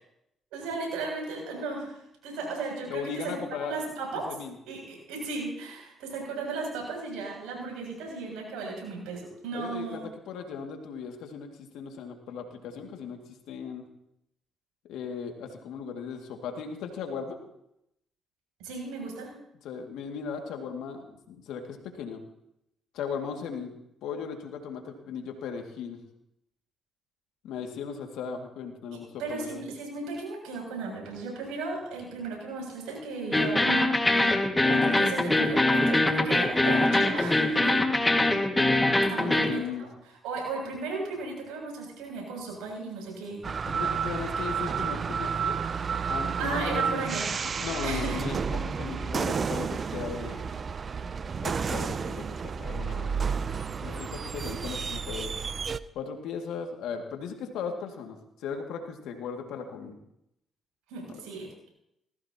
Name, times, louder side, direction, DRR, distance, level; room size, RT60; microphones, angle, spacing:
voice 1, 0.5-1.9 2.2-3.3 3.7-4.3 4.7-10.0 18.6-19.3 29.2-37.7 39.1-39.9 40.2-43.4 46.4-47.3 47.8-48.2 60.9-61.7, right 3 dB, 85° right, -1 dB, 7.5 m, -35 dB
voice 2, 2.9-3.8 4.1-4.5 9.5-13.2 13.5-13.8 14.9-17.4 19.6-22.2 22.9-23.7 24.0-26.0 27.4-29.6 37.6-38.1 39.2-39.9 43.7-45.6 46.1-47.1 47.4-50.4 51.4-53.3 53.8-55.3 55.9-60.0 61.1-61.2, left 6 dB, 80° left, 3 dB, 2.3 m, -37 dB
sound 1, 33.3-39.5, left 2 dB, 15° left, 2.0 m, -23 dB
sound 2, 43.4-55.8, right 6 dB, 45° right, 0.6 m, -31 dB
20.0 x 16.0 x 3.0 m, 0.80 s
supercardioid pair, 60°, 0 cm